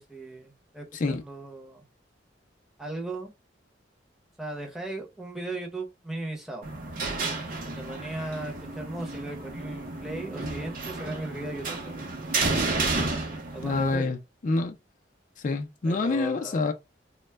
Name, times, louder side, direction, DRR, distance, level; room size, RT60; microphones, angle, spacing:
voice 1, 0.0-1.8 2.8-3.3 4.4-6.7 7.7-12.1 13.5-14.2 15.8-16.7, right 2 dB, ahead, 0.6 m, -37 dB
sound 1, 6.6-13.9, right 3 dB, 50° right, 0.6 m, -31 dB
voice 2, 13.6-14.2 14.4-14.8 15.4-16.7, left 3 dB, 45° left, 0.4 m, -26 dB
2.1 x 2.0 x 3.2 m
head